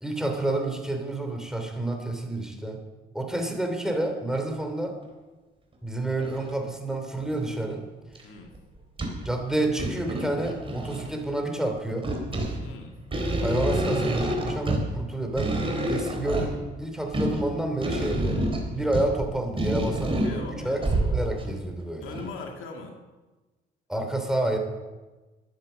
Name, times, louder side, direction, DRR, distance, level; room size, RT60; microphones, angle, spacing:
voice 1, 0.0-2.8 3.1-5.0 5.8-7.8 9.2-12.1 13.4-15.6 15.9-20.8 21.1-22.2 23.9-24.6, right 2 dB, 5° right, 4 dB, 2.8 m, -29 dB
sound 1, 4.3-4.4 5.0-5.1 6.2-6.6 7.2-7.7 8.1-8.2 8.5-9.3 9.7-11.2 11.8-21.6 22.1-22.3, right 1 dB, 25° right, 3.6 m, -28 dB
voice 2, 12.6-13.0 20.2-20.9 22.0-23.0, left 4 dB, 90° left, 3 dB, 2.2 m, -40 dB
12.5 x 10.5 x 6.6 m, 1.2 s
cardioid pair, 90°, 20 cm